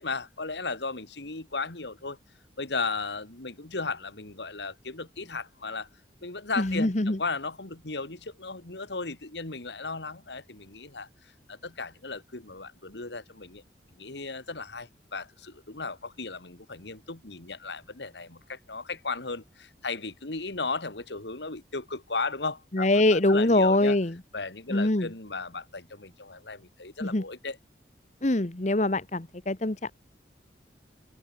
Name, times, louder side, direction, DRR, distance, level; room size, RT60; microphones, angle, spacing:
voice 1, 0.0-2.2 2.6-5.9 6.2-13.6 14.0-24.0 24.3-27.6, left 3 dB, 85° left, 2.4 m, -35 dB
voice 2, 6.6-7.2 22.7-24.2 24.7-25.1 27.0-27.2 28.2-29.9, left 2 dB, 40° left, 1.2 m, -24 dB
open air
head